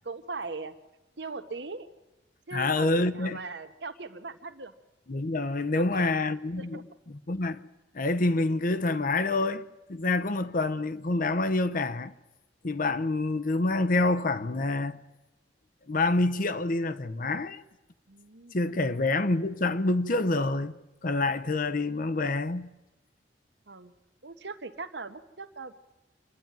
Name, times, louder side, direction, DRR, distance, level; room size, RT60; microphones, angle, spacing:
voice 1, 0.0-0.7 1.2-1.9 2.5-4.7 5.7-6.2 6.5-6.8 18.1-18.6 18.8-19.0 23.7-23.9 24.2-25.7, right 3 dB, 65° right, 1.2 m, -40 dB
voice 2, 2.5-3.4 5.1-6.8 7.3-7.6 7.9-12.1 12.6-15.0 15.9-17.6 18.5-20.8 21.0-22.7, left 2 dB, 50° left, 0.8 m, -27 dB
27.0 x 11.0 x 9.1 m
head